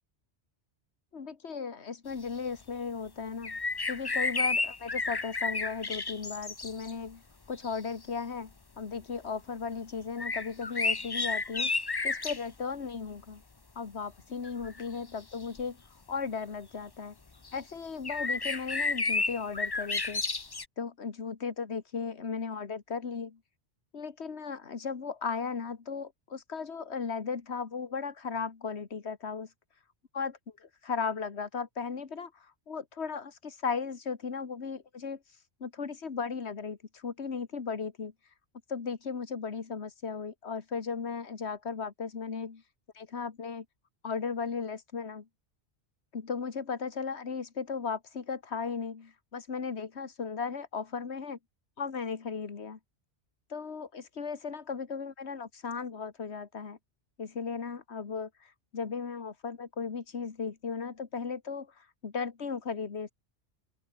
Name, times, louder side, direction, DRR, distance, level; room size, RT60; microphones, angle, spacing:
voice 1, 1.1-3.6 3.9-7.2 7.5-11.7 12.0-13.4 13.8-15.8 16.1-17.2 17.5-20.2 20.8-23.4 23.9-29.5 30.1-35.2 35.6-38.1 38.7-42.6 43.0-43.7 44.0-45.3 46.1-51.4 51.8-52.8 53.5-56.8 57.2-63.1, left 5 dB, 70° left, 2.0 m, -36 dB
sound 1, 3.4-6.9 7.6-7.8 10.2-12.4 14.4-14.8 15.6-15.7 17.4-17.6 18.0-20.6, left 3 dB, 25° left, 0.8 m, -31 dB
open air
omnidirectional pair, 1.2 m